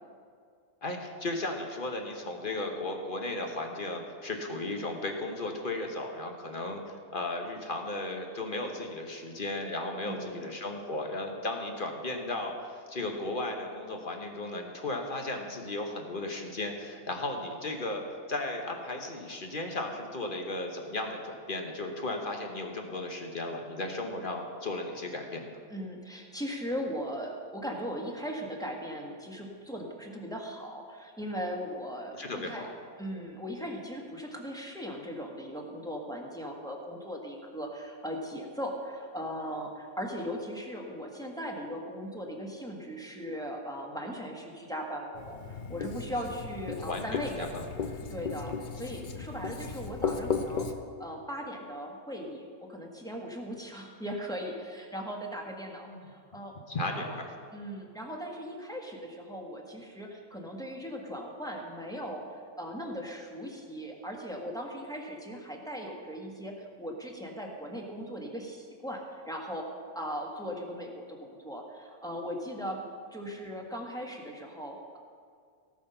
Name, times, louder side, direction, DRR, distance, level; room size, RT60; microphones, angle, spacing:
voice 1, 0.8-6.8 7.1-18.0 18.3-25.6 32.1-32.7 46.8-47.9 55.8-56.0 56.7-57.3, left 2 dB, 35° left, 3 dB, 1.2 m, -35 dB
voice 2, 10.0-10.5 25.7-32.6 33.0-47.5 48.1-50.7 51.0-56.6 56.8-57.0 57.5-69.7 69.9-72.8 73.1-75.0, equal, ahead, -1 dB, 1.3 m, -38 dB
Writing, 45.1-50.7, left 5 dB, 60° left, 0.4 m, -35 dB
17.5 x 6.4 x 5.6 m, 2.2 s
omnidirectional pair, 1.7 m